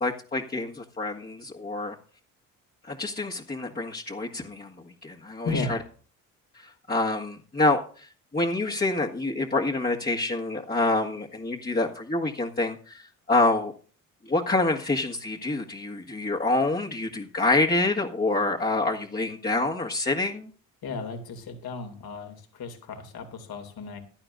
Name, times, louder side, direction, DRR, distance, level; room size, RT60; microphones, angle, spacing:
voice 1, 0.0-2.0 2.8-5.8 6.5-13.7 14.2-20.5, left 2 dB, 20° left, -3 dB, 1.7 m, -27 dB
voice 2, 20.8-24.0, left 3 dB, 60° left, 5 dB, 2.6 m, -34 dB
16.0 x 11.5 x 2.6 m, 0.41 s
hypercardioid pair, 50°, 42 cm